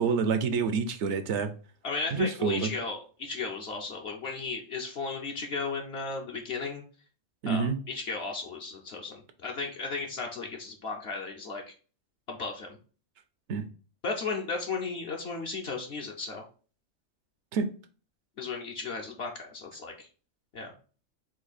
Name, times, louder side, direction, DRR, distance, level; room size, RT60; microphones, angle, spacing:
voice 1, 0.0-1.5 2.1-2.7 7.4-7.8 13.5-13.7 17.5-17.7, right 5 dB, 70° right, 0.9 m, -27 dB
voice 2, 1.8-6.8 7.5-11.7 12.3-12.8 14.0-16.4 18.4-20.1 20.5-20.7, left 4 dB, 60° left, 0.9 m, -35 dB
4.3 x 2.8 x 4.0 m
omnidirectional pair, 1.3 m